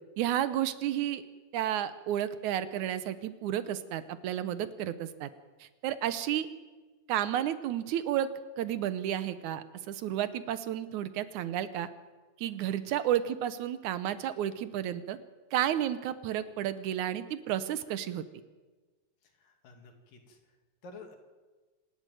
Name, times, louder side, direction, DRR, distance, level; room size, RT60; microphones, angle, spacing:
voice 1, 0.2-1.2 1.5-5.3 5.6-6.5 7.1-8.3 8.6-11.9 12.4-15.2 15.5-18.2, right 11 dB, 70° right, 13 dB, 2.0 m, -32 dB
voice 2, 19.4-20.4 20.8-21.2, left 3 dB, 65° left, 4 dB, 4.0 m, -50 dB
26.5 x 12.0 x 9.2 m, 1.3 s
omnidirectional pair, 4.3 m